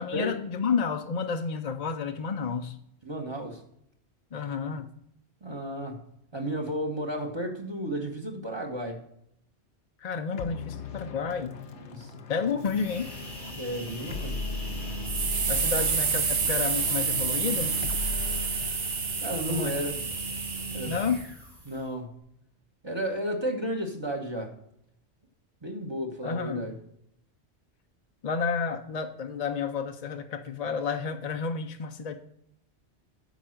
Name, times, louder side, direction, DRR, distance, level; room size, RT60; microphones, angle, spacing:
voice 1, 0.0-2.8 4.3-4.9 10.0-11.6 12.3-13.1 15.5-17.7 19.5-19.8 20.8-21.3 26.2-26.7 28.2-32.1, left 5 dB, 45° left, 6 dB, 0.5 m, -30 dB
voice 2, 3.0-3.6 5.4-6.0 6.3-9.0 11.9-12.2 13.6-14.5 15.7-15.8 19.2-20.0 20.7-21.0 21.6-22.2 22.8-24.5 25.6-26.7, equal, 25° right, 2 dB, 1.2 m, -33 dB
sound 1, 10.4-21.2, left 4 dB, 85° left, 1.1 m, -39 dB
sound 2, 12.6-22.0, right 1 dB, 45° right, 3.3 m, -39 dB
sound 3, 15.1-21.2, right 6 dB, 90° right, 1.3 m, -29 dB
9.0 x 4.7 x 6.4 m, 0.73 s
omnidirectional pair, 1.1 m